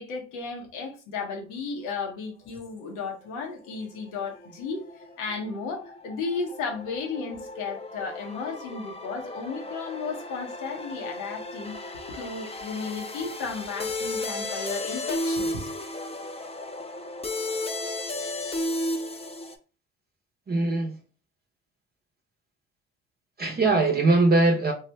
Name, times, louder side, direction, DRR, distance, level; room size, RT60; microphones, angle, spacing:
voice 1, 0.0-15.7, left 4 dB, 90° left, 0.9 m, -34 dB
sound 1, 3.3-19.5, left 1 dB, 20° left, 0.6 m, -34 dB
voice 2, 20.5-21.0 23.4-24.7, right 2 dB, 35° right, 0.7 m, -21 dB
3.2 x 2.0 x 3.2 m
supercardioid pair, 60°, 29 cm